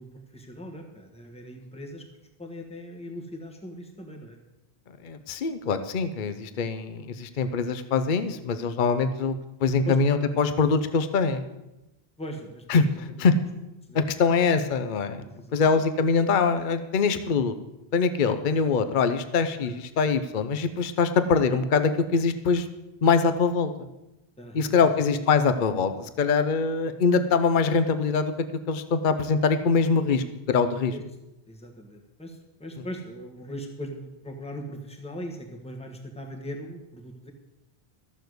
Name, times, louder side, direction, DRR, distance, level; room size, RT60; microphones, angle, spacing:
voice 1, 0.0-2.1 2.4-4.4 6.7-6.8 9.8-10.0 12.2-13.2 13.9-14.0 15.2-15.8 19.6-19.7 24.4-24.7 30.9-31.0 31.5-37.3, equal, 5° left, 2 dB, 1.5 m, -40 dB
voice 2, 5.0-9.3 9.6-11.4 12.7-12.8 13.2-13.3 13.9-15.2 15.5-17.5 17.9-22.7 23.0-23.9 24.5-28.3 28.7-30.9, left 5 dB, 55° left, 10 dB, 0.9 m, -23 dB
14.0 x 6.9 x 7.9 m, 0.96 s
omnidirectional pair, 1.1 m